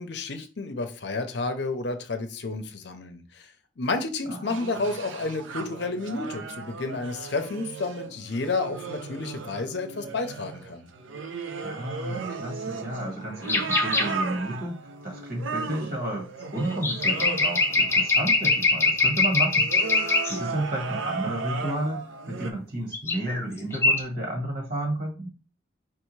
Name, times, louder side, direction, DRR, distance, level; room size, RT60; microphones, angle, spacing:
voice 1, 0.0-3.5 3.8-10.9, left 3 dB, 60° left, 7 dB, 0.6 m, -31 dB
sound 1, 4.5-22.5, right 4 dB, 90° right, 0.6 m, -36 dB
voice 2, 11.6-19.7 20.0-25.3, right 1 dB, 50° right, 0 dB, 1.6 m, -32 dB
sound 2, 13.5-14.1 16.7-20.4 22.9-23.4 23.7-24.0, left 3 dB, 15° left, 0.5 m, -23 dB
4.7 x 3.4 x 3.2 m, 0.35 s
head